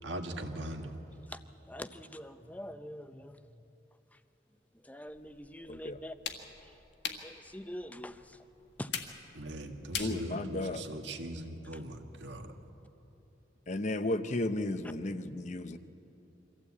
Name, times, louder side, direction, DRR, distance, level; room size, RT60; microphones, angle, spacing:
voice 1, 0.0-1.0 9.3-12.5, right 1 dB, 75° right, 5 dB, 1.7 m, -40 dB
voice 2, 1.7-3.4 4.1-4.2 4.8-6.1 6.6-6.7 7.2-8.4 8.8-8.9 11.7-11.8, left 1 dB, 10° left, 10 dB, 0.6 m, -44 dB
sound 1, 5.1-11.0, left 7 dB, 65° left, 1.8 m, -44 dB
voice 3, 5.7-6.0 10.0-10.8 13.7-15.8, left 2 dB, 40° left, 11 dB, 0.8 m, -34 dB
24.0 x 15.0 x 8.5 m, 3.0 s
head